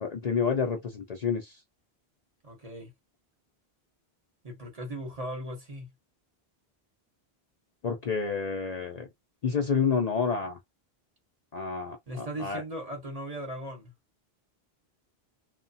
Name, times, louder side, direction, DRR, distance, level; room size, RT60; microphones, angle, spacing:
voice 1, 0.0-1.6 7.8-9.1 9.4-10.6 11.5-12.6, left 5 dB, 50° left, 0.6 m, -29 dB
voice 2, 2.4-2.9 4.4-5.9 12.1-13.9, right 1 dB, 40° right, 0.9 m, -38 dB
2.8 x 2.2 x 2.7 m
omnidirectional pair, 1.1 m